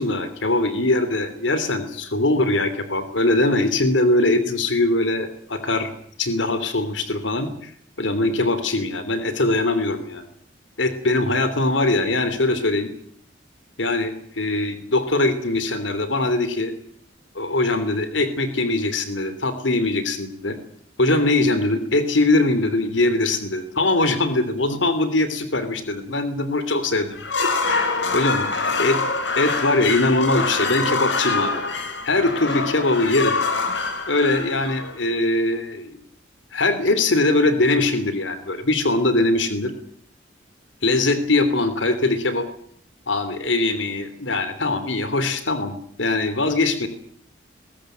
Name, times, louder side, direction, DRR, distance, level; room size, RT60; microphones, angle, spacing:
voice 1, 0.0-5.9 6.2-7.7 8.0-10.3 10.8-12.9 13.8-16.7 17.3-20.6 21.0-29.0 29.4-31.6 32.0-33.4 34.1-36.0 36.5-39.7 40.8-42.5 43.1-46.9, left 2 dB, 90° left, 11 dB, 3.2 m, -22 dB
sound 1, 27.1-35.3, left 3 dB, 75° left, 4.1 m, -25 dB
21.5 x 17.0 x 9.2 m, 0.63 s
head